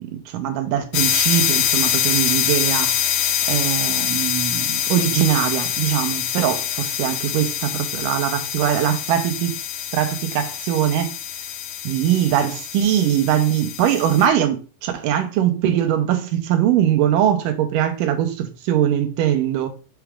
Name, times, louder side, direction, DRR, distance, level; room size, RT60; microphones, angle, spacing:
voice 1, 0.1-9.5 9.9-11.1 11.8-19.7, right 10 dB, 80° right, 2.3 m, -21 dB
sound 1, 0.9-14.3, left 10 dB, 80° left, 2.2 m, -24 dB
5.9 x 4.8 x 3.3 m
omnidirectional pair, 4.0 m